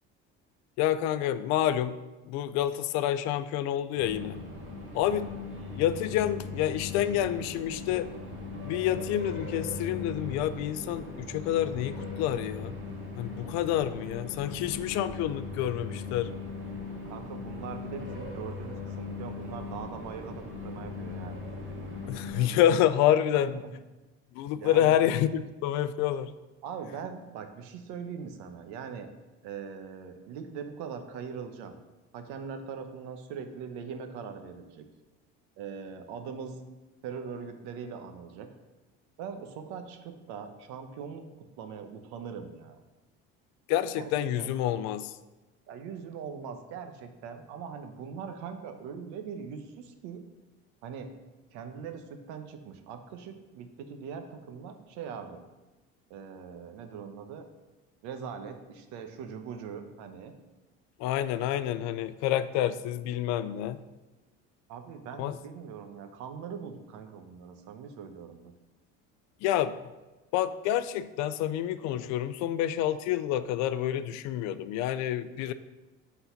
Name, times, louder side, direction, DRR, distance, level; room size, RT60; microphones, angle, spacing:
voice 1, 0.8-2.0 2.3-4.4 4.9-5.3 5.8-8.1 8.6-12.8 13.2-16.3 22.1-23.6 24.4-26.3 43.7-45.1 61.0-63.8 65.2-65.4 69.4-69.8 70.3-75.5, left 11 dB, 65° left, 13 dB, 0.5 m, -28 dB
sound 1, 3.9-22.3, left 3 dB, 40° right, 1.9 m, -39 dB
voice 2, 17.0-21.4 22.3-22.8 23.3-23.7 24.6-25.0 26.6-29.1 29.4-31.7 32.1-34.9 35.6-36.6 37.0-38.5 39.2-42.8 44.0-44.6 45.7-50.2 50.8-51.1 51.5-55.4 56.1-57.4 58.0-60.3 64.7-68.5, right 6 dB, 75° right, 7 dB, 1.0 m, -41 dB
8.0 x 4.1 x 5.7 m, 1.1 s
cardioid pair, 170°, 29 cm